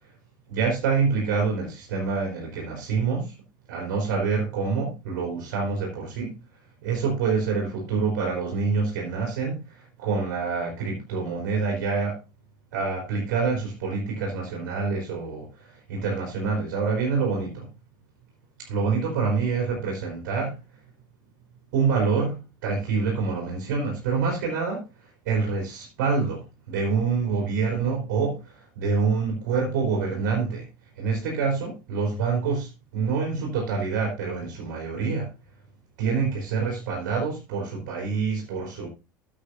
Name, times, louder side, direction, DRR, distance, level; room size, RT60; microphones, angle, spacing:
voice 1, 0.5-3.3 3.7-6.3 6.8-12.2 12.7-17.7 18.6-20.5 21.7-22.4 22.6-24.8 25.3-30.6 31.0-35.3 36.0-38.9, right 5 dB, 60° right, 3.9 m, -26 dB
15.5 x 7.9 x 2.7 m
figure-of-eight pair, 70°, 11 cm